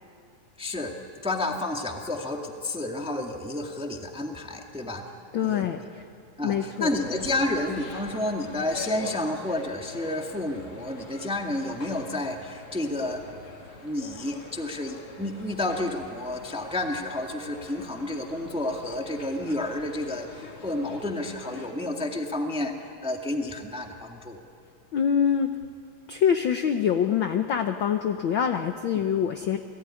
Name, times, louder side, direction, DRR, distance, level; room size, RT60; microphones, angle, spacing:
voice 1, 0.6-1.0 1.2-5.0 5.4-5.7 6.4-13.2 13.8-24.4, left 1 dB, 5° right, 3 dB, 1.2 m, -30 dB
voice 2, 5.3-6.0 6.4-6.9 24.9-25.5 26.1-29.6, left 8 dB, 70° left, 7 dB, 1.1 m, -25 dB
sound 1, 6.9-21.7, left 2 dB, 50° left, 3.7 m, -44 dB
29.0 x 19.0 x 9.9 m, 2.5 s
omnidirectional pair, 3.4 m